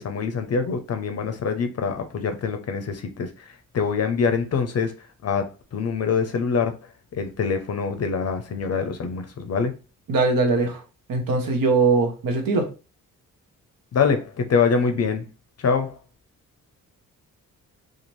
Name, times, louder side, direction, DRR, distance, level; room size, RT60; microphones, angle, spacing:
voice 1, 0.0-4.9 5.2-6.8 7.1-9.7 13.9-15.3 15.6-16.0, left 5 dB, 50° left, 0.5 m, -24 dB
voice 2, 10.1-10.8 11.1-12.7, right 3 dB, 75° right, 0.9 m, -21 dB
2.6 x 2.4 x 3.0 m
cardioid pair, 65°, 34 cm